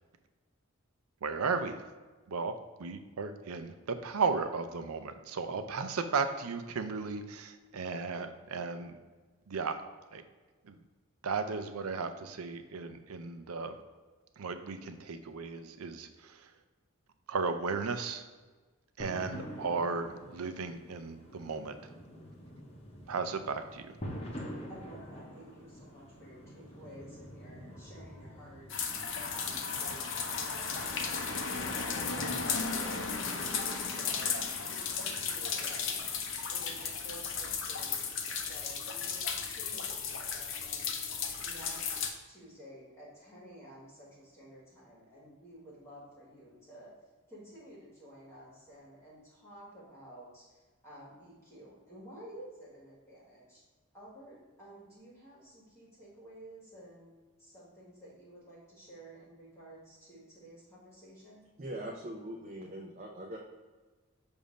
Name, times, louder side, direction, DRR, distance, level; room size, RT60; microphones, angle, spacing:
voice 1, 1.2-1.9 2.3-2.5 2.8-9.0 9.5-9.8 10.1-10.2 10.6-10.8 11.2-13.8 14.4-16.5 17.3-18.2 19.0-21.8 23.1-23.9, right 4 dB, 80° right, 9 dB, 0.5 m, -35 dB
sound 1, 19.0-37.0, equal, 30° left, 0.8 m, -48 dB
voice 2, 24.7-28.7 29.3-33.5 33.8-34.4 34.7-40.9 41.4-46.9 47.3-53.6 53.9-61.5, right 1 dB, 10° left, -6 dB, 1.4 m, -52 dB
sound 2, 28.7-42.1, left 5 dB, 60° left, 0.6 m, -35 dB
voice 3, 61.6-63.4, right 1 dB, 35° right, -2 dB, 0.5 m, -41 dB
6.9 x 2.7 x 5.1 m, 1.3 s
head